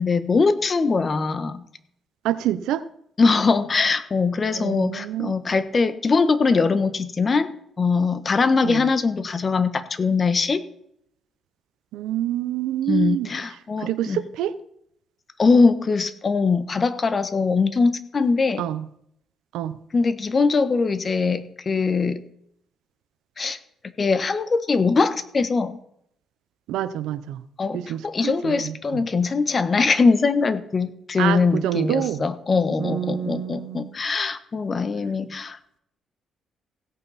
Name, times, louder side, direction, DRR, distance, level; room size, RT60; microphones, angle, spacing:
voice 1, 0.0-1.6 3.2-7.5 7.8-10.6 12.9-14.2 15.4-18.6 19.9-22.2 23.4-23.6 24.0-25.8 27.6-35.6, left 4 dB, 35° left, 11 dB, 1.1 m, -22 dB
voice 2, 2.2-2.8 4.5-5.3 8.6-8.9 11.9-13.4 13.8-14.6 18.6-18.8 19.5-19.8 26.7-27.4 27.7-29.0 31.2-32.3 32.8-33.9, right 12 dB, 90° right, 15 dB, 0.7 m, -27 dB
16.5 x 8.8 x 4.2 m, 0.72 s
cardioid pair, 90°, 0 cm